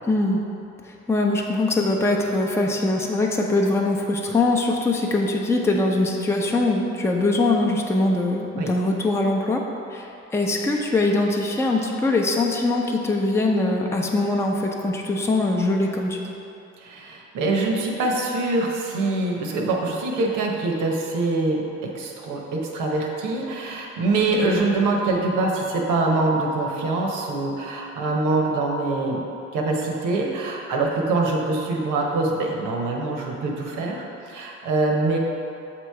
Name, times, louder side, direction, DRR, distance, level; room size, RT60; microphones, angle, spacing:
voice 1, 0.1-0.4 0.8-9.6 9.9-16.3 24.3-24.5, left 2 dB, 10° left, 0 dB, 0.5 m, -22 dB
voice 2, 16.8-29.2 29.5-35.2, right 2 dB, 85° right, 0 dB, 0.9 m, -24 dB
7.4 x 3.0 x 4.6 m, 2.8 s
cardioid pair, 90°, 30 cm